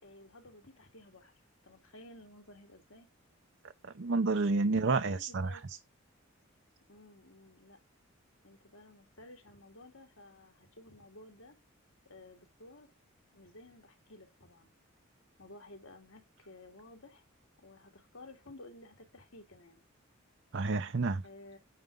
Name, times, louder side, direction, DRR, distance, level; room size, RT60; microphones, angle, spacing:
voice 1, 0.0-1.3 1.6-3.1 4.4-5.7 6.9-7.8 8.4-11.6 12.0-12.9 13.3-14.7 15.4-17.2 17.6-19.8 21.2-21.6, left 2 dB, 70° left, 3.2 m, -54 dB
voice 2, 3.8-5.6 20.5-21.2, right 3 dB, 55° right, 0.7 m, -30 dB
9.5 x 5.2 x 5.4 m
head